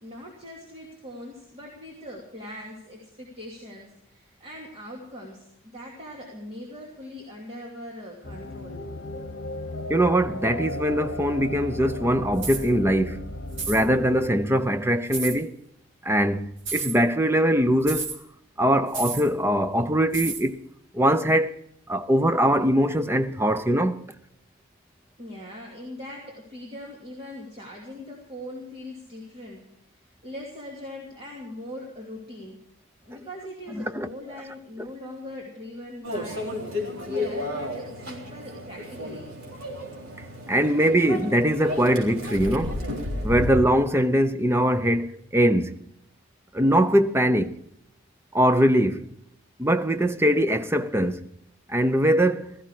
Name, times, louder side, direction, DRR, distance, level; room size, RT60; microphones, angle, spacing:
voice 1, 0.0-8.9 25.2-29.7 30.0-32.6 33.1-39.3, left 1 dB, 25° right, 2.7 m, -41 dB
sound 1, 8.2-14.3, left 1 dB, 55° left, 1.4 m, -35 dB
voice 2, 9.9-13.3 13.7-15.6 16.0-18.2 18.6-20.6 20.9-21.6 21.9-24.0 33.7-34.1 40.2-42.8 43.2-45.8 46.5-47.6 48.3-49.1 49.6-51.3 51.7-52.5, equal, 10° right, 0.6 m, -22 dB
sound 2, 12.4-12.7 13.5-13.8 15.1-15.4 16.6-17.0 17.9-18.2 18.9-19.3 20.1-20.5, right 5 dB, 60° right, 2.5 m, -31 dB
Microwave oven, 36.0-43.5, left 1 dB, 85° right, 3.8 m, -33 dB
16.5 x 15.0 x 4.9 m
head